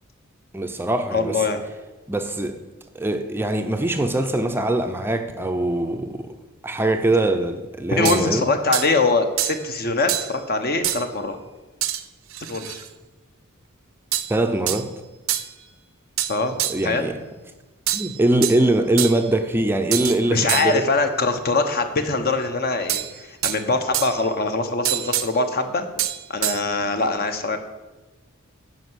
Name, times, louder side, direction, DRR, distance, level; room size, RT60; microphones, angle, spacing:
voice 1, 0.5-1.4 2.1-2.6 2.9-6.4 6.6-8.4 14.3-14.9 16.7-17.2 17.9-20.8, right 1 dB, 10° right, 0.5 m, -22 dB
voice 2, 1.1-1.6 7.9-11.4 12.5-12.8 16.3-16.6 16.8-17.1 20.3-25.9 26.3-27.6, left 3 dB, 45° left, 1.0 m, -23 dB
sound 1, 8.0-8.3 8.7-8.9 9.4-9.6 10.1-10.4 10.8-11.1 11.8-12.0 12.3-12.9 14.1-14.4 14.7-14.8 15.3-15.5 16.2-16.9 17.9-18.6 19.0-19.3 19.9-20.2 20.5-20.8 22.9-23.6 23.9-24.3 24.8-25.3 26.0-26.6, right 13 dB, 70° right, 0.6 m, -26 dB
10.5 x 5.5 x 7.9 m
head